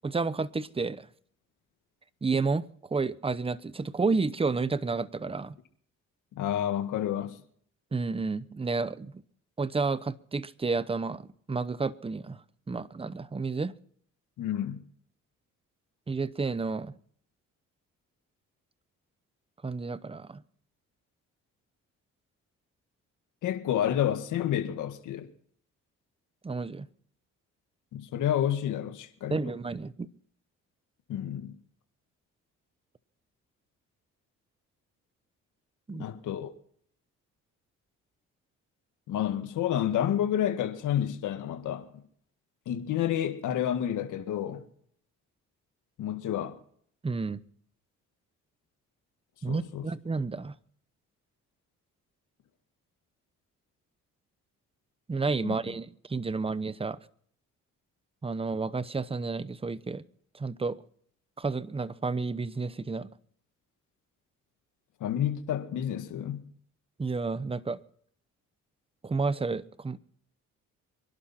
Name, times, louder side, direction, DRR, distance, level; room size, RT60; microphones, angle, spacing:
voice 1, 0.0-1.1 2.2-5.5 7.9-9.1 9.6-12.4 12.7-13.7 16.1-16.9 19.6-20.4 26.4-26.9 29.3-30.1 35.9-36.1 47.0-47.4 49.4-50.5 55.1-57.0 58.2-60.0 60.3-60.8 61.4-63.1 67.0-67.8 69.0-70.0, right 4 dB, 20° right, 0.9 m, -31 dB
voice 2, 6.3-7.4 14.4-14.8 23.4-25.3 27.9-29.4 31.1-31.6 35.9-36.5 39.1-41.9 42.6-44.6 46.0-46.6 49.5-49.8 55.4-55.5 65.0-66.4, left 10 dB, 80° left, 1.8 m, -30 dB
25.5 x 11.5 x 4.3 m
cardioid pair, 90°, 30 cm